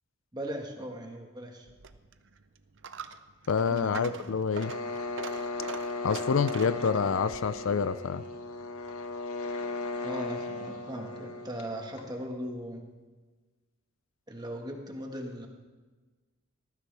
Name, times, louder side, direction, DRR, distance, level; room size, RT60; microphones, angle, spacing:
voice 1, 0.3-1.7 3.7-4.2 10.0-12.9 14.3-15.5, equal, 20° right, 2 dB, 1.5 m, -38 dB
Coin (dropping), 1.6-9.2, right 5 dB, 55° right, 0.6 m, -45 dB
voice 2, 3.5-4.7 6.0-8.2, left 5 dB, 60° left, 14 dB, 0.4 m, -27 dB
sound 1, 4.5-12.3, left 2 dB, 80° left, 1.5 m, -36 dB
18.5 x 14.0 x 3.4 m, 1.3 s
head